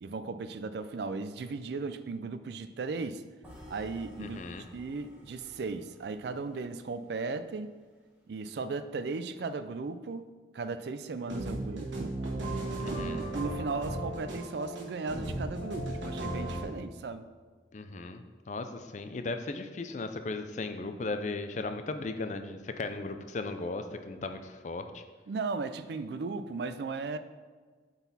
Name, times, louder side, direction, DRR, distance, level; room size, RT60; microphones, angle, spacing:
voice 1, 0.0-3.2 3.7-7.7 8.3-10.3 10.5-12.1 12.9-17.3 25.3-27.2, right 4 dB, 60° right, 11 dB, 0.4 m, -36 dB
sound 1, 3.4-7.5, left 1 dB, 5° right, 1.4 m, -53 dB
voice 2, 4.2-4.6 12.8-13.2 17.7-25.0, left 3 dB, 40° left, 8 dB, 0.4 m, -37 dB
sound 2, 11.2-16.6, right 1 dB, 90° right, 1.4 m, -35 dB
8.1 x 4.0 x 4.1 m, 1.5 s
head